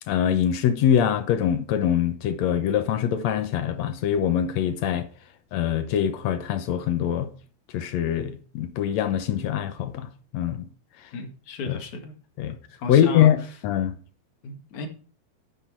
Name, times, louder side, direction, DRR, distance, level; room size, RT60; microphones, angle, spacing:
voice 1, 0.1-5.1 5.5-7.3 7.7-10.6 11.7-11.8 12.4-12.6 12.9-13.4 13.6-13.9, left 9 dB, 75° left, 1.6 m, -23 dB
voice 2, 11.1-12.1 12.8-13.3 14.4-14.9, left 3 dB, 55° left, 3.0 m, -34 dB
10.5 x 9.4 x 4.6 m
omnidirectional pair, 4.2 m